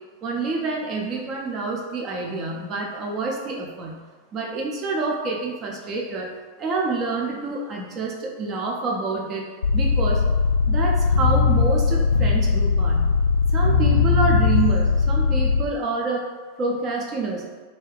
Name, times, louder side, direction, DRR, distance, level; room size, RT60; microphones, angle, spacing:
voice 1, 0.2-4.0 4.3-6.3 6.6-9.4 9.7-10.2 10.7-13.1 13.5-16.2 16.6-17.5, right 3 dB, 30° right, -1 dB, 0.5 m, -27 dB
sound 1, 9.6-15.6, left 5 dB, 70° left, 0.3 m, -19 dB
2.4 x 2.2 x 3.3 m, 1.4 s
figure-of-eight pair, 90°, 0 cm